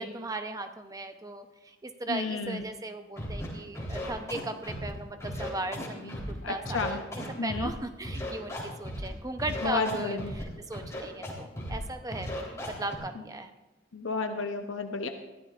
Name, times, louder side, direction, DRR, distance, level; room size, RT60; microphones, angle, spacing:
voice 1, 0.0-7.0 7.4-12.3 12.7-13.5, right 2 dB, 20° right, 7 dB, 0.8 m, -37 dB
voice 2, 2.1-2.6 6.0-7.0 7.4-7.7 9.6-10.3 13.9-15.1, left 4 dB, 80° left, 5 dB, 0.9 m, -32 dB
Scratching (performance technique), 3.2-3.5 3.7-4.9 5.2-6.3 6.6-7.7 8.0-9.1 9.4-10.4 10.7-11.3 11.6-11.8 12.1-12.9, equal, 15° left, 3.7 m, -36 dB
21.5 x 15.0 x 2.5 m, 1.1 s
head